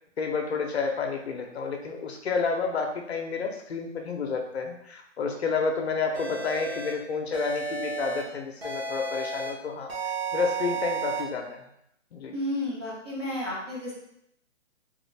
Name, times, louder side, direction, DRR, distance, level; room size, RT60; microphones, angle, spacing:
voice 1, 0.2-11.6 12.1-12.3, left 5 dB, 60° left, 3 dB, 0.6 m, -30 dB
sound 1, 6.1-6.9 7.3-8.2 8.6-9.5 9.9-11.2, right 4 dB, 55° right, 1.2 m, -32 dB
voice 2, 12.3-13.9, left 1 dB, 20° right, -7 dB, 0.6 m, -32 dB
3.5 x 2.4 x 3.1 m, 0.76 s
hypercardioid pair, 170°, 37 cm